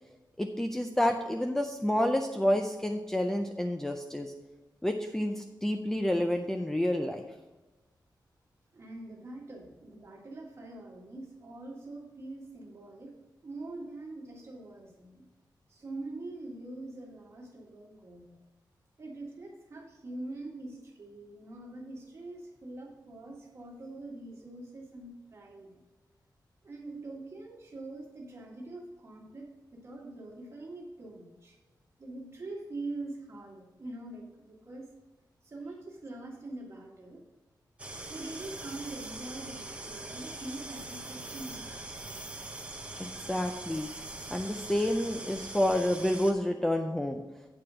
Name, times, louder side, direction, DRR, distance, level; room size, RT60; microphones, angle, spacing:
voice 1, 0.4-4.3 4.8-7.2 43.0-43.9 44.3-47.2, left 1 dB, 5° left, 4 dB, 0.4 m, -29 dB
voice 2, 8.7-13.2 13.4-15.3 15.7-18.4 19.0-25.8 26.6-31.6 32.0-34.9 35.4-37.2 38.1-42.2, right 2 dB, 35° right, -1 dB, 1.8 m, -44 dB
sound 1, 37.8-46.3, right 2 dB, 15° right, 0.8 m, -42 dB
8.6 x 4.9 x 6.1 m, 1.1 s
wide cardioid pair, 180°, 8 cm